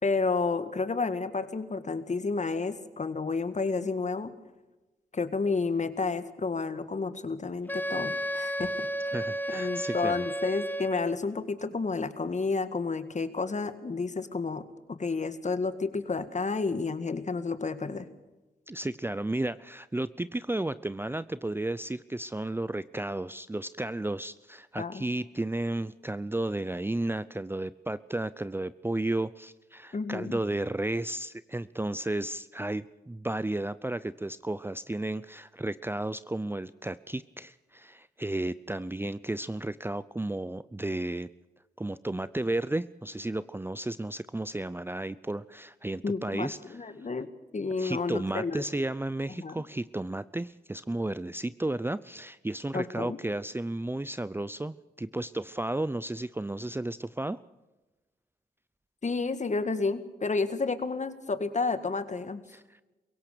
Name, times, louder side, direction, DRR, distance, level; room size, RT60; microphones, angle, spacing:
voice 1, 0.0-4.3 5.1-8.9 9.5-14.6 15.0-18.1 24.8-25.0 29.9-30.4 46.0-47.3 47.5-48.6 49.4-49.6 52.7-53.2 59.0-62.4, left 4 dB, 45° left, 12 dB, 1.9 m, -31 dB
Wind instrument woodwind instrument, 7.7-11.2, equal, 10° left, 1.0 m, -33 dB
voice 2, 9.1-10.3 18.7-41.3 41.8-46.8 47.8-57.4 62.5-62.8, right 1 dB, 15° right, 16 dB, 0.6 m, -33 dB
23.0 x 17.0 x 6.8 m, 1.1 s
supercardioid pair, 45°, 17 cm